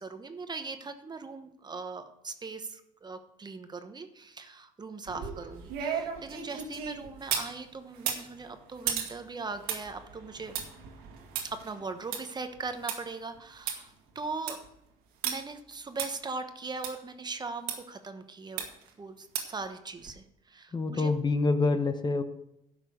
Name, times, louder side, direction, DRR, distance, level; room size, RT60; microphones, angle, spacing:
voice 1, 0.0-10.5 11.4-14.6 15.2-18.7 19.0-21.1, right 4 dB, 30° right, 8 dB, 1.1 m, -40 dB
sound 1, 5.1-7.5 7.9-13.0 13.3-13.4 13.7-13.8 14.2-14.7 15.2-15.3 16.0-16.1 16.8-16.9 17.7-17.8 18.6-18.9 19.3-19.6 20.0-20.1, right 8 dB, 85° right, 1.9 m, -35 dB
voice 2, 20.7-22.2, left 3 dB, 30° left, 9 dB, 1.0 m, -26 dB
11.0 x 6.1 x 6.5 m, 0.83 s
supercardioid pair, 85°, 15 cm